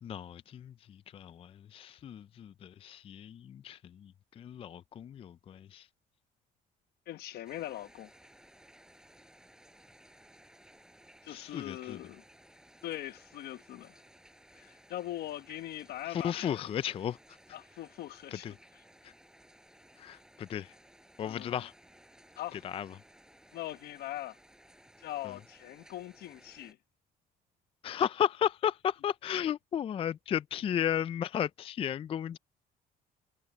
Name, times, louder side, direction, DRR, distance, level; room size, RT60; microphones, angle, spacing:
voice 1, 0.0-5.9 11.3-12.0 16.1-17.4 18.3-18.5 19.0-19.1 20.0-20.7 21.2-21.7 22.5-23.0 25.2-25.4 27.8-32.4, left 9 dB, 35° left, 0.3 m, -34 dB
voice 2, 7.1-8.1 11.2-12.2 12.8-14.0 14.5-16.6 17.5-18.5 21.2-21.6 22.4-22.6 23.5-24.4 25.0-26.8, left 14 dB, 70° left, 1.1 m, -41 dB
sound 1, 7.4-26.7, right 1 dB, 5° right, 6.1 m, -59 dB
cardioid pair, 110°, 17 cm